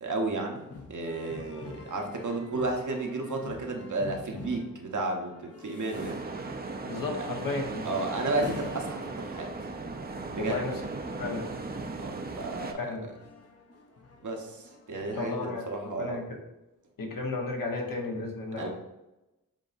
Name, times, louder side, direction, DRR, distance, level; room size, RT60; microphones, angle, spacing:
voice 1, 0.0-6.2 7.2-7.3 7.8-9.5 10.3-10.9 12.0-13.0 14.2-16.2 18.6-18.7, right 2 dB, 60° right, 2 dB, 0.9 m, -33 dB
sound 1, 0.6-15.7, left 3 dB, 45° left, 0.8 m, -48 dB
sound 2, 5.9-12.7, right 3 dB, 30° right, 0.5 m, -37 dB
voice 2, 6.9-7.9 8.4-8.5 10.4-10.7 11.2-11.4 12.8-13.0 15.2-16.4 17.0-18.7, left 3 dB, 70° left, 1 dB, 1.1 m, -33 dB
7.4 x 2.7 x 2.5 m, 0.97 s
cardioid pair, 65°, 34 cm